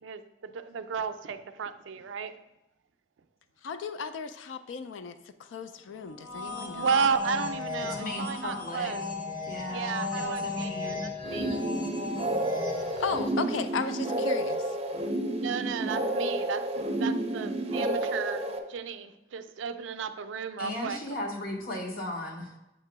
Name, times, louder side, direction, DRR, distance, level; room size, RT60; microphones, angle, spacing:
voice 1, 0.0-2.4 6.8-9.1 9.7-11.5 15.4-18.4 18.7-21.0, right 6 dB, 85° right, 10 dB, 0.4 m, -33 dB
voice 2, 3.6-6.9 13.0-14.6, left 5 dB, 85° left, 10 dB, 0.4 m, -35 dB
sound 1, 6.1-13.5, left 3 dB, 25° left, 0.9 m, -36 dB
voice 3, 7.8-9.0 9.5-11.1 20.6-22.6, left 1 dB, 50° left, 2 dB, 0.9 m, -36 dB
sound 2, 11.2-18.6, right 1 dB, 30° right, 0.5 m, -30 dB
7.3 x 2.9 x 4.6 m, 0.93 s
head